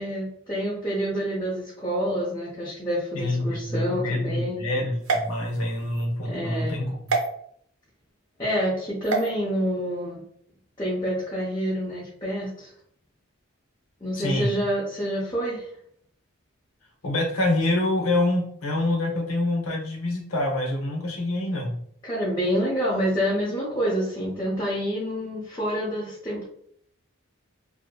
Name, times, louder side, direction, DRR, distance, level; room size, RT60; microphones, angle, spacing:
voice 1, 0.0-4.6 6.2-6.8 8.4-10.2 10.8-12.7 14.0-15.7 21.4-21.5 22.0-26.4, equal, 20° left, -7 dB, 0.6 m, -27 dB
voice 2, 3.1-7.1 14.2-14.6 17.0-21.8, left 1 dB, 85° left, 1 dB, 0.7 m, -26 dB
sound 1, 5.0-6.1 7.1-7.3 9.0-9.3, right 4 dB, 60° right, 0.5 m, -27 dB
2.7 x 2.5 x 2.2 m, 0.66 s
head